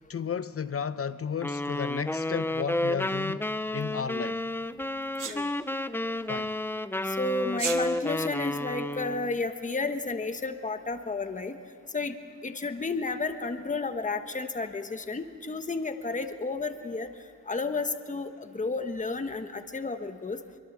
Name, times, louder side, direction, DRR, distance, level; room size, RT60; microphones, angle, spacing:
voice 1, 0.1-4.4 6.3-6.5, left 7 dB, 45° left, 0.7 m, -33 dB
sound 1, 1.4-9.4, left 1 dB, 5° left, 0.5 m, -31 dB
Sneeze, 5.2-5.4 7.5-7.8, right 6 dB, 70° right, 2.3 m, -32 dB
voice 2, 7.0-11.6 11.9-12.2 12.4-17.1 17.5-20.4, left 3 dB, 20° left, 1.3 m, -32 dB
23.5 x 23.5 x 7.3 m
cardioid pair, 95°, 33 cm